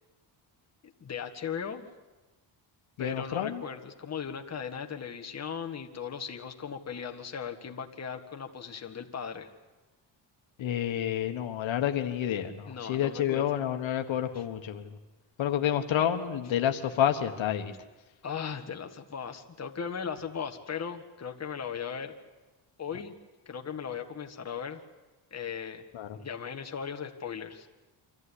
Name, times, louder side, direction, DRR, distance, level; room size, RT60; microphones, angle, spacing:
voice 1, 1.0-1.9 3.0-9.5 12.7-13.5 14.3-14.4 18.2-22.1 22.8-23.2 23.5-24.8 25.3-25.9 26.1-27.7, left 7 dB, 35° left, 4 dB, 1.8 m, -37 dB
voice 2, 3.0-3.6 10.6-14.9 15.4-17.7 25.9-26.2, left 10 dB, 75° left, 6 dB, 1.5 m, -29 dB
25.0 x 14.5 x 9.9 m, 1.2 s
cardioid pair, 130°, 46 cm